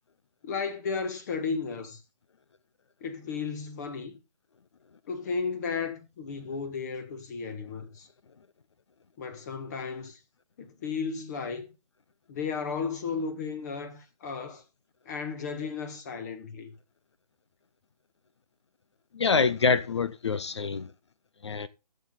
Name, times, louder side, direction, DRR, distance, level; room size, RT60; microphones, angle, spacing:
voice 1, 0.4-2.0 3.0-4.1 5.1-8.1 9.2-10.2 10.6-11.7 12.3-14.6 15.0-16.7, left 5 dB, 25° left, 1.6 m, -34 dB
voice 2, 19.1-20.9 21.4-21.7, left 5 dB, 40° left, 0.9 m, -26 dB
16.5 x 7.6 x 3.9 m
figure-of-eight pair, 140°, 21 cm